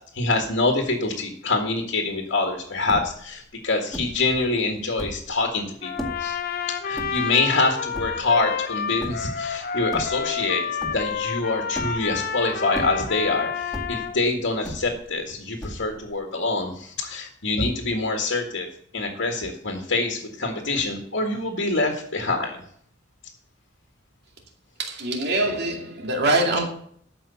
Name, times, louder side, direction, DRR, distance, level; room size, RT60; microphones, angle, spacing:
voice 1, 0.1-6.4 6.8-10.7 10.9-18.7 18.9-22.6, left 3 dB, 70° left, 1.8 m, -25 dB
sound 1, 2.7-3.3 3.9-4.3 4.8-5.4 6.0-6.4 7.0-7.5 7.9-8.4 9.0-9.4 9.8-10.5 10.8-11.3 11.7-12.3 12.7-13.3 13.7-14.2 14.6-15.2 15.6-16.1, equal, ahead, 2.0 m, -35 dB
Trumpet, 5.8-14.2, left 6 dB, 50° left, 0.8 m, -29 dB
voice 2, 24.8-26.7, right 2 dB, 55° right, 2.4 m, -23 dB
12.5 x 5.6 x 7.0 m
head